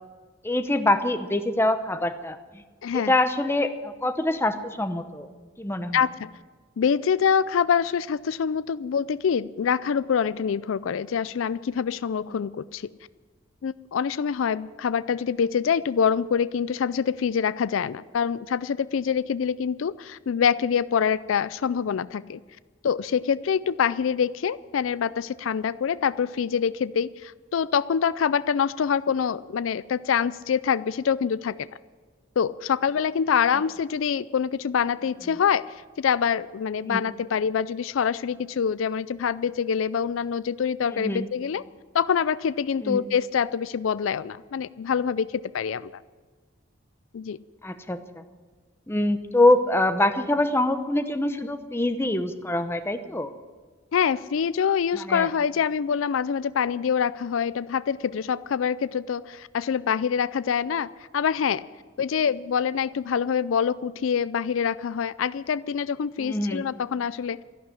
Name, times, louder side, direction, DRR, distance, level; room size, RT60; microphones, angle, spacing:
voice 1, 0.4-2.6 2.9-5.3 5.6-6.0 36.8-37.0 40.9-41.3 42.8-43.0 47.6-48.2 48.9-53.3 54.9-55.3 66.2-66.6, left 1 dB, 10° left, 8 dB, 0.8 m, -24 dB
voice 2, 2.8-3.1 5.9-6.3 6.8-12.9 13.6-22.4 22.8-31.7 32.4-41.6 41.9-46.0 47.1-47.4 53.9-61.6 62.0-67.4, left 7 dB, 85° left, 17 dB, 0.4 m, -25 dB
13.0 x 11.5 x 9.6 m, 1.4 s
head